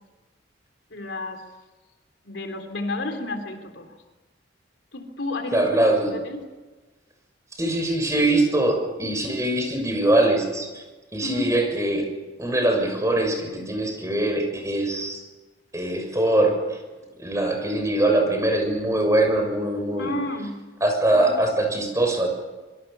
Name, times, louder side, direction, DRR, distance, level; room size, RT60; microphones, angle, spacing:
voice 1, 0.9-1.4 2.3-4.0 4.9-5.8 6.1-6.4 11.2-11.5 20.0-20.6 21.1-21.4, left 2 dB, 70° left, 6 dB, 3.4 m, -31 dB
voice 2, 5.5-6.1 7.6-10.8 11.1-12.1 12.4-15.2 15.7-16.8 17.2-20.1 20.8-22.3, right 1 dB, 15° right, 3 dB, 6.6 m, -22 dB
26.0 x 23.5 x 6.9 m, 1.2 s
head